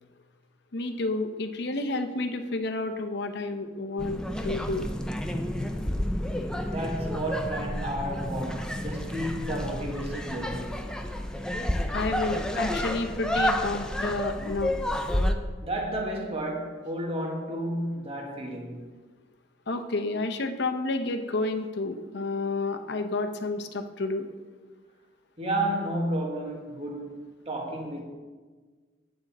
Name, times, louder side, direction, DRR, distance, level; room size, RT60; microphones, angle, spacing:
voice 1, 0.7-4.8 11.9-14.8 19.7-24.3, left 2 dB, 65° left, 0.8 m, -30 dB
sound 1, 4.0-15.3, left 1 dB, 5° left, 0.6 m, -30 dB
voice 2, 6.7-10.8 15.6-18.9 25.4-27.2 27.4-28.0, right 1 dB, 35° right, 1.6 m, -32 dB
9.1 x 7.9 x 4.2 m
head